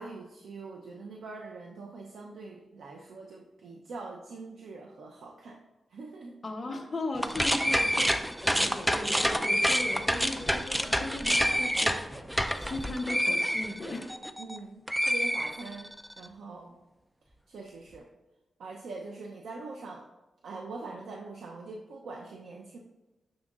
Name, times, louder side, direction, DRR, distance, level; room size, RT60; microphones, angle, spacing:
voice 1, 0.0-5.6 5.9-6.3 14.4-16.8 17.5-18.1 18.6-20.1 20.4-22.8, right 3 dB, 85° right, 0 dB, 0.6 m, -43 dB
voice 2, 6.4-8.1 8.4-12.1 12.6-14.1, left 2 dB, 30° left, 2 dB, 0.8 m, -37 dB
sound 1, 7.1-14.6 14.9-16.0, equal, 5° right, 0.3 m, -28 dB
9.5 x 6.3 x 2.4 m, 1.1 s
wide cardioid pair, 140°, 0 cm